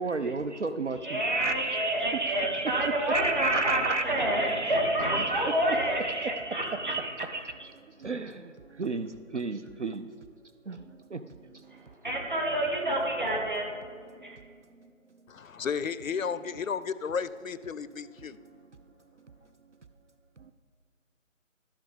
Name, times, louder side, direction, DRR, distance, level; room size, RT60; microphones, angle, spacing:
voice 1, 0.0-10.1 10.7-11.8 14.1-14.5 14.8-14.9 18.2-18.7 20.4-20.5, right 3 dB, 60° right, 10 dB, 0.6 m, -33 dB
voice 2, 1.0-6.7 7.0-7.1 12.0-13.7 14.2-14.4, right 1 dB, 35° right, -1 dB, 1.9 m, -28 dB
voice 3, 15.3-18.4, left 6 dB, 80° left, 16 dB, 0.6 m, -33 dB
13.0 x 6.0 x 5.3 m, 2.1 s
figure-of-eight pair, 175°, 40 cm